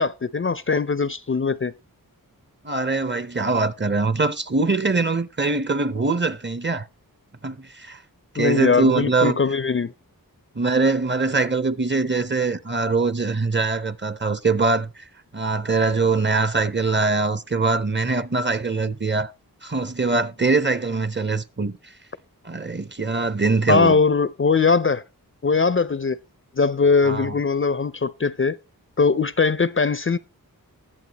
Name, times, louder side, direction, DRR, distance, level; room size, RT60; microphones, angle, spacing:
voice 1, 0.0-1.7 8.4-9.9 23.7-25.0 25.4-26.2 26.6-28.6 29.0-30.2, left 4 dB, 35° left, 0.5 m, -20 dB
voice 2, 2.6-6.9 7.4-8.0 8.3-9.4 10.5-15.1 15.3-19.3 19.6-21.7 22.4-24.0 27.0-27.3, right 3 dB, 30° right, 0.7 m, -22 dB
20.0 x 7.5 x 2.9 m
wide cardioid pair, 70°, 36 cm